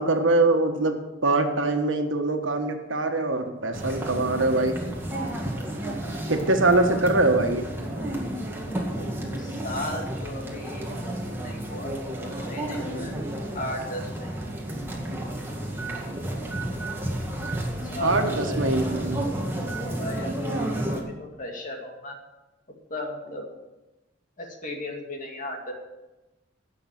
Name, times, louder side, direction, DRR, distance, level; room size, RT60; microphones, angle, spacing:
voice 1, 0.0-4.8 6.3-7.7 18.0-19.2, right 2 dB, 90° right, 5 dB, 1.5 m, -23 dB
sound 1, 3.7-21.0, right 1 dB, 10° right, 2.0 m, -31 dB
voice 2, 8.9-11.0 11.4-13.2 13.5-14.5 17.8-18.8 19.5-20.6 20.9-22.2 22.9-23.4 24.4-25.7, left 1 dB, 45° left, 1 dB, 2.3 m, -36 dB
17.0 x 6.5 x 6.0 m, 1.0 s
head